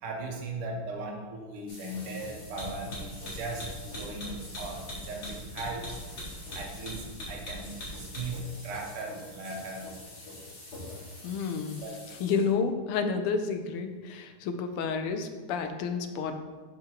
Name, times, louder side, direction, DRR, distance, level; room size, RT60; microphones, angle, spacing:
voice 1, 0.0-6.0 6.5-7.7 8.0-9.9 11.8-12.0, right 2 dB, 90° right, 1 dB, 1.9 m, -38 dB
sound 1, 1.7-12.5, left 1 dB, 50° left, 2.2 m, -42 dB
voice 2, 11.2-11.8 12.2-16.4, left 5 dB, 90° left, 7 dB, 1.6 m, -30 dB
7.5 x 5.8 x 2.9 m, 1.4 s
omnidirectional pair, 2.4 m